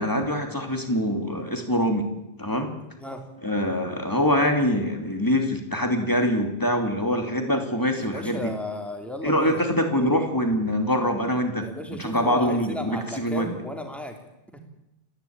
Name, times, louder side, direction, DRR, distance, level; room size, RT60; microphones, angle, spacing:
voice 1, 0.0-2.1 2.4-2.7 3.4-8.5 9.2-11.7 12.0-13.5, equal, 20° left, 4 dB, 2.8 m, -24 dB
voice 2, 7.9-9.6 11.6-14.2 14.5-14.6, equal, ahead, 3 dB, 3.2 m, -34 dB
28.5 x 11.5 x 8.9 m, 0.95 s
omnidirectional pair, 1.0 m